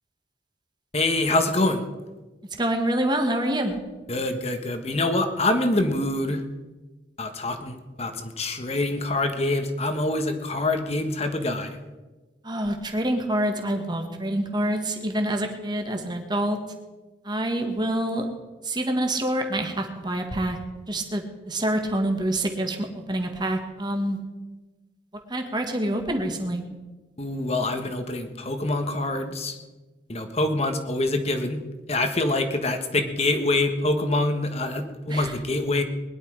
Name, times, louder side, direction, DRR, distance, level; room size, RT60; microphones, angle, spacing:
voice 1, 0.9-1.8 4.1-6.4 7.2-11.8 27.2-29.6 30.1-31.6 31.9-35.8, left 2 dB, 35° left, 6 dB, 1.4 m, -25 dB
voice 2, 2.6-3.8 12.4-16.6 17.2-18.3 18.6-20.6 20.9-24.2 25.3-26.6 35.1-35.4, right 1 dB, 25° right, 4 dB, 1.7 m, -26 dB
21.0 x 11.0 x 4.9 m, 1.2 s
head